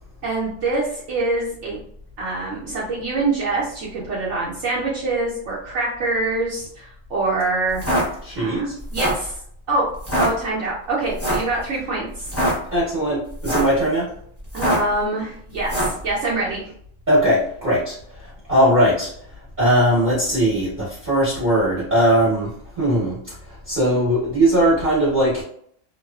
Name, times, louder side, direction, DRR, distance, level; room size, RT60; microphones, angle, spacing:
voice 1, 0.2-1.8 2.2-7.8 8.4-9.4 9.7-9.9 10.2-12.3 14.5-16.7, right 2 dB, 65° right, -6 dB, 0.9 m, -25 dB
sound 1, 7.7-8.0 8.8-9.3 10.0-10.3 11.2-11.5 12.2-12.5 13.3-13.8 14.5-14.9 15.6-16.0, equal, 15° left, 0.7 m, -22 dB
voice 2, 8.2-8.7 12.7-14.1 17.1-17.9 18.5-19.1 19.6-23.2 23.7-25.4, equal, 40° right, -9 dB, 0.9 m, -19 dB
2.7 x 2.3 x 2.2 m, 0.65 s
omnidirectional pair, 1.4 m